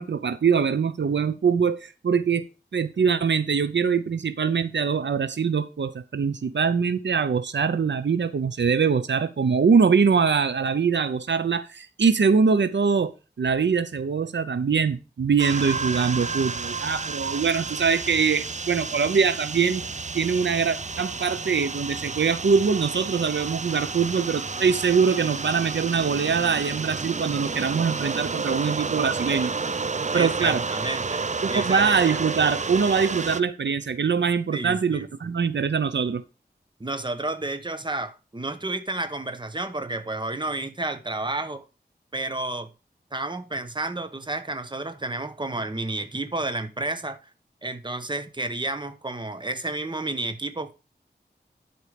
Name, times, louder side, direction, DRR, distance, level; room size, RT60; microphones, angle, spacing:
voice 1, 0.0-2.4 2.7-19.8 20.1-29.5 30.1-30.6 31.4-36.2, right 5 dB, 85° right, 0.6 m, -23 dB
sound 1, 15.4-33.4, right 4 dB, 40° right, 0.5 m, -31 dB
voice 2, 30.1-32.0 34.5-35.3 36.8-41.6 42.1-42.7 43.1-47.3 47.6-50.7, right 2 dB, 25° right, 1.0 m, -31 dB
11.5 x 4.5 x 5.1 m
wide cardioid pair, 70°, 18 cm